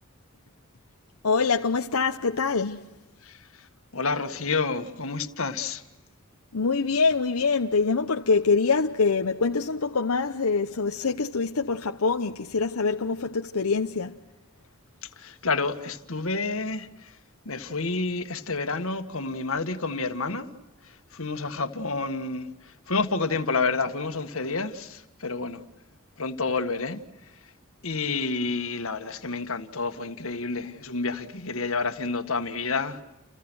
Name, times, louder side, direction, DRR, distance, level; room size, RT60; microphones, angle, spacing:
voice 1, 1.2-2.9 6.5-14.2, left 4 dB, 90° left, 0.9 m, -24 dB
voice 2, 3.2-3.7 3.9-5.8 15.0-17.1 17.4-20.5 20.8-25.6 26.2-27.0 27.8-33.0, left 3 dB, 70° left, 1.7 m, -29 dB
29.5 x 29.5 x 6.3 m
head